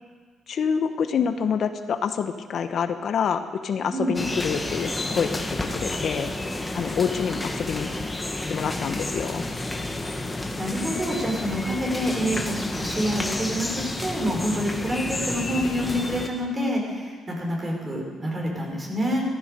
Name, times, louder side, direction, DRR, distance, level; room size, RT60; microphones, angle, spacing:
voice 1, 0.5-5.4 5.7-6.3 6.7-7.9 8.5-9.4, left 7 dB, 60° left, 8 dB, 1.0 m, -27 dB
sound 1, 4.1-16.3, left 2 dB, 15° left, 1.7 m, -30 dB
voice 2, 10.2-19.2, equal, 30° right, 0 dB, 5.5 m, -27 dB
15.0 x 14.5 x 6.8 m, 1.6 s
cardioid pair, 90°, 0 cm